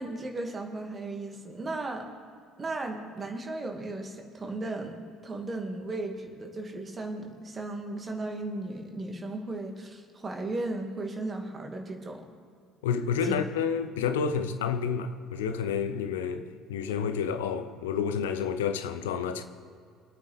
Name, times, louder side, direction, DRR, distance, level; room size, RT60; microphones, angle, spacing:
voice 1, 0.0-2.1 2.6-5.0 5.2-12.2 13.2-13.4, right 2 dB, 30° right, 2.4 m, -36 dB
voice 2, 12.8-19.4, left 7 dB, 70° left, 0.7 m, -29 dB
24.5 x 8.9 x 3.6 m
figure-of-eight pair, 55°, 0 cm